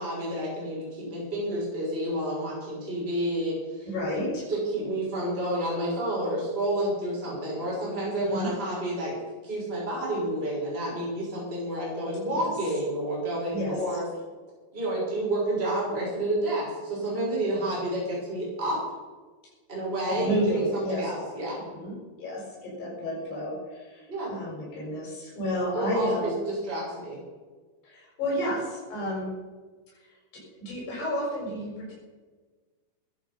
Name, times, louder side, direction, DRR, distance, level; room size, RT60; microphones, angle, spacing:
voice 1, 0.0-3.9 4.5-9.2 9.4-14.0 14.7-18.8 19.7-21.6 24.1-24.3 25.7-27.2, right 1 dB, 15° right, -6 dB, 6.0 m, -29 dB
voice 2, 3.8-4.5 8.2-8.5 12.3-12.5 13.5-13.8 20.1-21.0 21.6-26.3 27.8-29.3 30.0-30.1 30.6-31.9, equal, 75° left, -4 dB, 8.5 m, -31 dB
16.5 x 12.5 x 5.7 m, 1.4 s
omnidirectional pair, 4.7 m